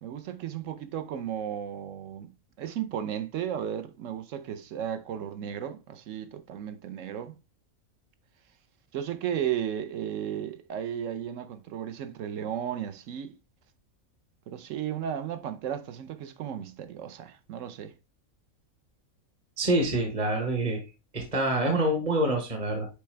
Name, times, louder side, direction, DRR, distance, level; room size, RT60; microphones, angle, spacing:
voice 1, 0.0-2.3 2.6-7.3 8.9-13.3 14.5-17.9, right 9 dB, 65° right, 1.0 m, -34 dB
voice 2, 19.6-20.8 21.1-22.9, right 1 dB, 25° right, 1.1 m, -26 dB
6.7 x 4.5 x 3.2 m
omnidirectional pair, 1.5 m